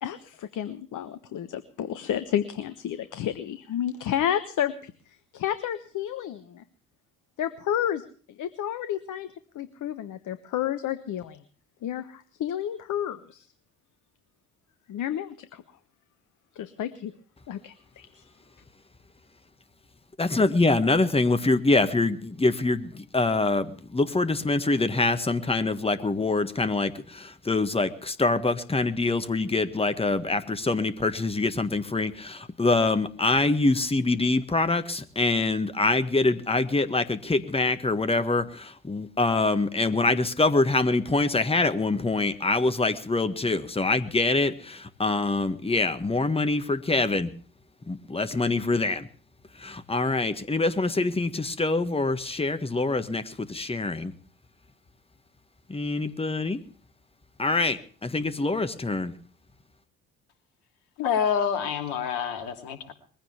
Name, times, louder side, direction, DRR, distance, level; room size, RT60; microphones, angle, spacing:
voice 1, 0.0-6.6 7.4-8.0 8.4-9.3 9.5-11.4 11.8-13.5 14.9-15.6 16.5-17.1 17.5-18.3, left 10 dB, 45° left, 12 dB, 1.2 m, -31 dB
voice 2, 20.2-47.3 47.9-49.1 49.6-54.1 55.7-56.6 57.4-59.1, left 3 dB, 15° left, 11 dB, 1.6 m, -25 dB
voice 3, 61.0-62.9, left 7 dB, 65° left, 7 dB, 2.7 m, -27 dB
21.5 x 16.0 x 3.4 m, 0.43 s
figure-of-eight pair, 50°, 41 cm